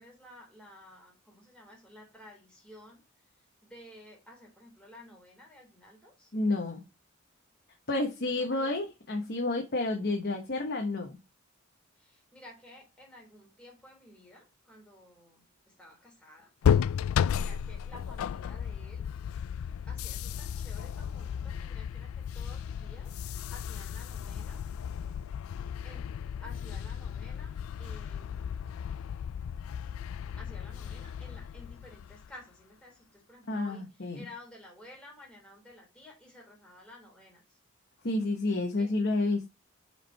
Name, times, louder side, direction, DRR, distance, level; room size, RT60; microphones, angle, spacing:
voice 1, 0.0-3.0 3.6-6.3 8.4-8.7 12.0-15.4 15.8-16.5 17.3-19.0 19.9-23.2 23.5-24.6 25.8-26.1 26.4-29.0 30.4-33.8 34.1-37.4 38.8-38.9, left 1 dB, 5° left, 3.0 m, -53 dB
voice 2, 6.3-6.8 7.9-11.2 33.5-34.3 38.0-39.5, left 2 dB, 50° left, 1.0 m, -30 dB
sound 1, 16.6-32.3, left 8 dB, 85° left, 0.3 m, -34 dB
5.8 x 4.6 x 4.3 m
head